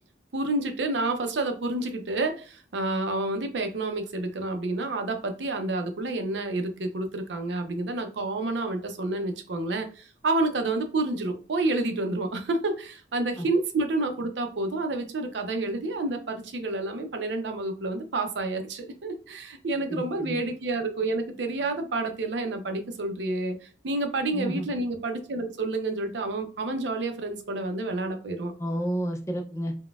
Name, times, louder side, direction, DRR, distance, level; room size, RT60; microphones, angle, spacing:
voice 1, 0.3-23.6 23.8-28.5, right 2 dB, 85° right, 6 dB, 0.5 m, -29 dB
voice 2, 19.9-20.4 24.3-24.7 28.6-29.7, right 1 dB, 15° left, 4 dB, 0.4 m, -30 dB
3.9 x 2.2 x 2.2 m, 0.37 s
head